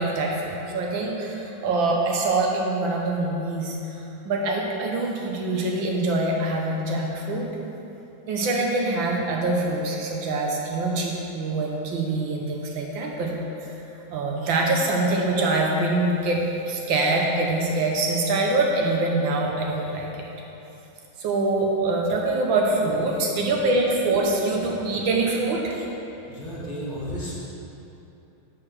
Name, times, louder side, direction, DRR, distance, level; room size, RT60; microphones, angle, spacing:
voice 1, 0.0-3.8 4.2-7.5 8.3-13.3 13.6-13.7 14.1-16.4 16.7-20.1 21.2-25.8, right 2 dB, 75° right, -1 dB, 1.8 m, -24 dB
voice 2, 26.3-27.3, equal, 25° left, -6 dB, 1.6 m, -33 dB
7.8 x 4.9 x 6.4 m, 2.9 s
omnidirectional pair, 2.1 m